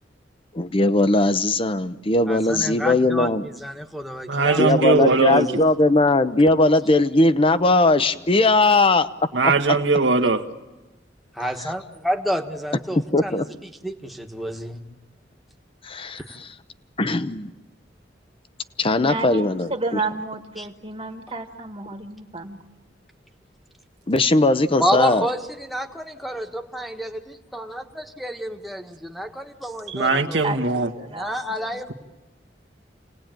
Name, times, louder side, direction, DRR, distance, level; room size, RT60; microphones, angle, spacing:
voice 1, 0.5-3.4 4.6-9.1 13.1-13.5 15.8-16.2 17.0-17.5 18.8-19.7 24.1-25.3, left 2 dB, 30° left, 0.8 m, -19 dB
voice 2, 2.3-5.0 5.3-5.4 11.4-14.8 16.2-16.3 20.6-20.7 24.8-30.6 31.1-31.9, equal, ahead, 1.5 m, -29 dB
voice 3, 4.3-5.6 9.3-10.4 29.9-30.9, right 3 dB, 90° right, 1.5 m, -20 dB
voice 4, 19.0-22.6 30.4-31.3 31.6-31.9, right 3 dB, 35° right, 1.6 m, -31 dB
28.5 x 19.0 x 9.1 m
head